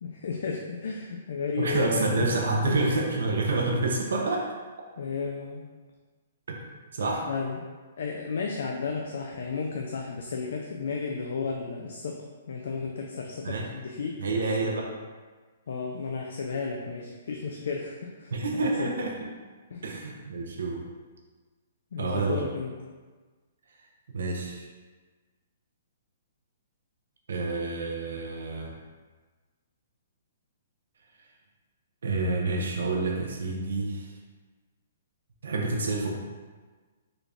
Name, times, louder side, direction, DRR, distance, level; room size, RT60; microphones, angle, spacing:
voice 1, 0.0-2.4 2.6-2.8 5.0-5.7 7.3-7.6 8.0-14.8 15.7-18.3 18.8-18.9 19.7-19.8 21.9-22.7, left 5 dB, 60° left, 1 dB, 0.3 m, -33 dB
voice 2, 1.6-4.5 6.5-6.6 6.9-7.3 13.4-13.7 14.2-14.9 18.3-19.3 19.8-20.9 22.0-22.5 24.1-24.6 27.3-28.8 32.0-34.1 35.4-36.1, right 3 dB, 75° right, 0 dB, 0.6 m, -28 dB
3.9 x 2.4 x 3.3 m, 1.4 s
hypercardioid pair, 180°, 0 cm